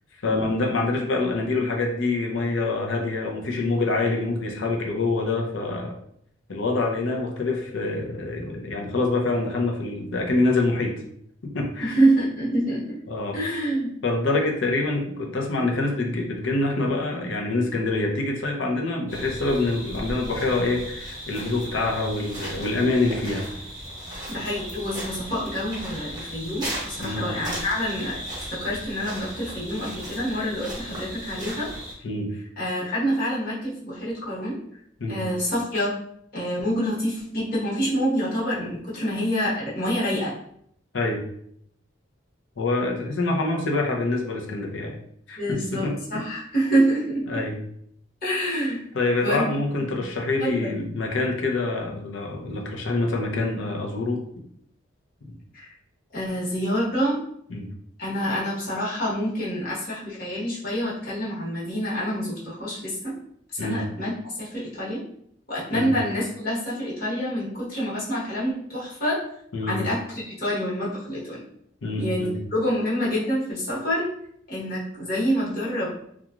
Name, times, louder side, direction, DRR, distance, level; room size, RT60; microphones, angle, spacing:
voice 1, 0.2-5.9 6.5-11.0 11.5-12.0 13.1-13.4 14.0-23.5 27.0-27.2 32.0-32.3 35.0-35.2 40.9-41.2 42.6-45.0 45.3-46.2 47.3-47.6 48.9-54.2 55.3-55.4 57.5-57.7 63.6-63.8 65.7-65.9 69.5-69.8 71.8-72.4, left 2 dB, 85° left, 1 dB, 0.6 m, -26 dB
voice 2, 11.8-13.0 13.3-14.0 24.3-28.2 28.5-31.7 32.6-34.6 35.1-36.0 36.3-40.3 45.4-47.3 48.2-48.8 49.2-49.5 49.9-50.0 50.4-50.7 55.5-55.7 56.1-57.2 58.0-63.2 63.5-65.0 65.5-69.2 69.6-71.4 72.0-74.1 74.5-75.9, equal, 50° left, -7 dB, 1.1 m, -27 dB
sound 1, 19.1-31.9, right 1 dB, 20° right, 0.8 m, -36 dB
2.9 x 2.3 x 2.4 m, 0.70 s
head